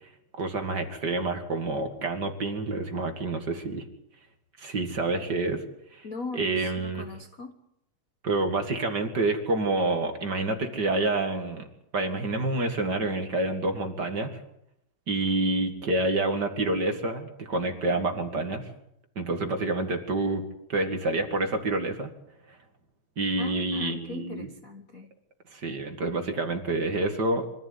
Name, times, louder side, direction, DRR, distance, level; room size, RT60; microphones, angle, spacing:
voice 1, 0.3-3.9 4.6-5.6 5.9-6.0 6.3-7.0 8.2-11.7 11.9-14.4 15.1-18.7 19.2-20.4 20.7-22.1 22.5-22.6 23.2-24.5 25.5-27.5, right 2 dB, 35° right, 5 dB, 2.3 m, -28 dB
voice 2, 6.0-7.5 23.4-25.1, left 3 dB, 80° left, 6 dB, 0.7 m, -40 dB
25.0 x 14.5 x 9.6 m, 0.79 s
omnidirectional pair, 3.7 m